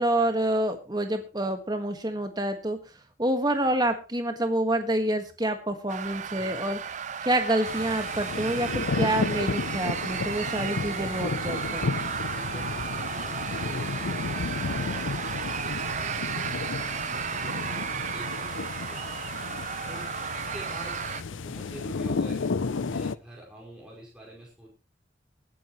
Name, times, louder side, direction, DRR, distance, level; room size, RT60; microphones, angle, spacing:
voice 1, 0.0-2.8 3.2-6.8 7.2-12.1, right 1 dB, 20° right, 6 dB, 1.6 m, -27 dB
sound 1, 5.9-21.2, right 7 dB, 40° right, 0.5 m, -34 dB
sound 2, 7.6-23.2, left 4 dB, 80° left, 0.6 m, -33 dB
voice 2, 12.3-15.1 15.4-19.3 19.8-20.1 20.4-21.0 21.3-24.7, equal, 5° right, -4 dB, 5.2 m, -45 dB
19.5 x 10.5 x 3.1 m, 0.32 s
head